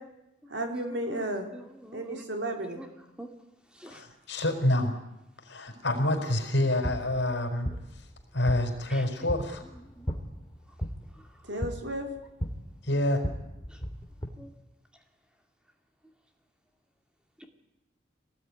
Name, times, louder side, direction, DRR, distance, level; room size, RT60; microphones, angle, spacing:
voice 1, 0.5-1.5 1.9-2.8 11.5-12.1, right 1 dB, 75° right, 4 dB, 4.2 m, -33 dB
voice 2, 1.5-2.2 2.8-2.9 3.2-3.3 3.8-4.0 8.9-9.0 10.0-10.1 11.5-11.6 14.4-14.5, right 1 dB, 5° right, 4 dB, 2.5 m, -44 dB
voice 3, 3.9-4.9 5.4-7.7 8.3-9.6 12.8-13.2, left 1 dB, 70° left, 5 dB, 4.7 m, -27 dB
sound 1, 6.5-14.3, equal, 20° left, 2.5 m, -37 dB
24.0 x 18.5 x 9.8 m, 0.93 s
head